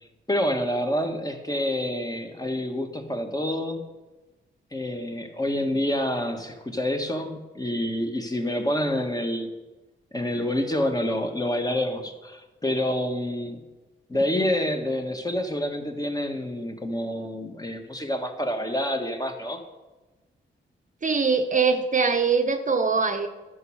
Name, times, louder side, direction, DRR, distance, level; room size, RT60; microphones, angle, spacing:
voice 1, 0.3-3.9 4.7-9.5 10.1-13.6 14.1-19.6, left 1 dB, 20° left, 4 dB, 1.5 m, -27 dB
voice 2, 21.0-23.3, right 5 dB, 40° right, 7 dB, 0.9 m, -22 dB
11.0 x 6.4 x 6.4 m, 1.1 s
cardioid pair, 65°, 21 cm